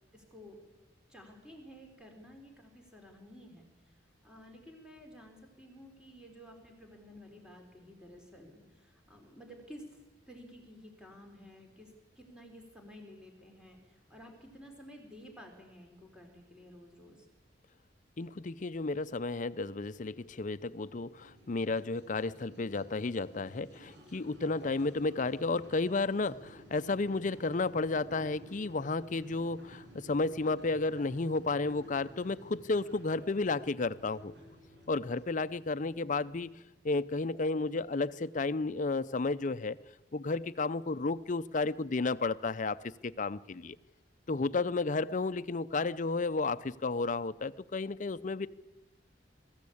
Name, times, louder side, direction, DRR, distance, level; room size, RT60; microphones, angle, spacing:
voice 1, 0.1-0.6 1.1-3.7 4.2-9.9 10.3-17.3, equal, 5° right, 2 dB, 4.0 m, -52 dB
voice 2, 18.2-34.3 34.9-36.5 36.8-39.8 40.1-43.8 44.3-48.5, left 3 dB, 45° left, 14 dB, 0.6 m, -32 dB
sound 1, 20.0-36.6, equal, 70° right, 5.8 m, -54 dB
22.0 x 14.5 x 8.6 m, 1.1 s
head